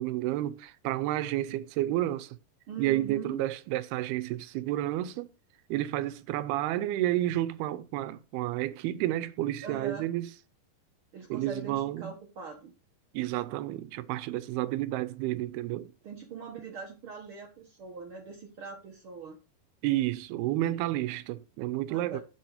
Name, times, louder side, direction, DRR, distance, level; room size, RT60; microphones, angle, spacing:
voice 1, 0.0-2.4 2.8-5.3 5.7-10.3 11.3-12.1 13.1-15.9 19.8-22.2, right 14 dB, 85° right, 2.7 m, -30 dB
voice 2, 2.7-3.4 9.6-10.1 11.1-12.7 16.0-19.4 21.9-22.2, right 5 dB, 65° right, 1.3 m, -42 dB
7.7 x 7.6 x 4.9 m
omnidirectional pair, 4.5 m